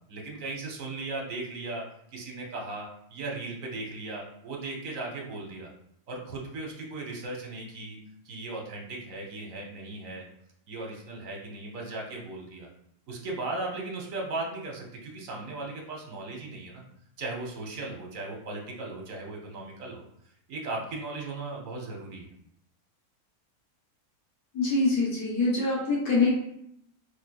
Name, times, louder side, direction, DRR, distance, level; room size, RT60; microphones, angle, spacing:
voice 1, 0.1-1.8 2.1-5.7 6.1-8.0 8.2-10.2 10.7-12.7 13.1-16.8 17.2-20.0 20.5-22.3, right 2 dB, 60° right, 0 dB, 1.2 m, -37 dB
voice 2, 24.5-26.3, left 3 dB, 80° left, -5 dB, 1.5 m, -24 dB
4.9 x 3.1 x 2.2 m, 0.74 s
omnidirectional pair, 1.6 m